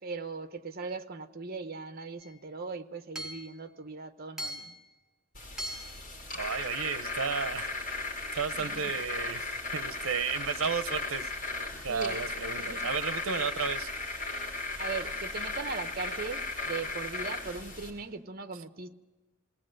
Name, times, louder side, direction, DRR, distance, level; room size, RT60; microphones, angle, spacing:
voice 1, 0.0-4.7 8.5-8.9 11.9-12.8 14.8-18.9, right 4 dB, 45° right, 9 dB, 0.9 m, -39 dB
Hammer / Chink clink, 2.2-2.3 3.2-3.5 4.4-4.9 5.6-6.1, equal, 5° right, 1.6 m, -39 dB
sound 1, 5.3-17.9, left 3 dB, 40° left, 4.3 m, -36 dB
voice 2, 6.3-8.1 8.3-11.6 11.8-13.9, right 6 dB, 75° right, 12 dB, 0.7 m, -33 dB
20.5 x 17.0 x 7.7 m, 1.2 s
head